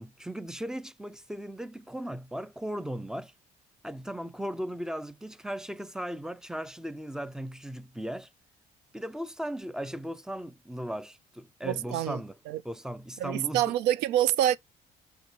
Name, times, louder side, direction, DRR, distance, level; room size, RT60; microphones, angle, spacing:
voice 1, 0.0-3.3 3.8-8.3 8.9-12.4 12.6-13.8, equal, 5° right, 0.3 m, -37 dB
voice 2, 11.6-12.2 12.5-12.6 13.2-14.6, right 12 dB, 85° right, 0.4 m, -26 dB
5.9 x 2.7 x 2.8 m
cardioid pair, 110°, 17 cm